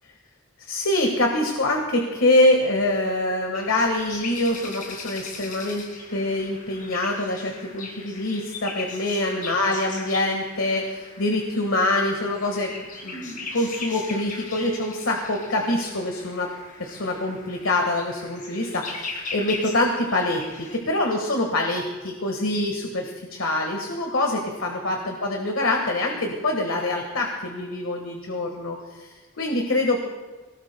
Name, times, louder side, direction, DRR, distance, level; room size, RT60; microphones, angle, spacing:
voice 1, 0.7-12.7 13.0-16.5 16.8-30.0, left 2 dB, 70° left, 2 dB, 1.5 m, -25 dB
sound 1, 3.5-20.8, left 3 dB, 40° left, 2.4 m, -39 dB
23.0 x 18.5 x 2.2 m, 1.3 s
head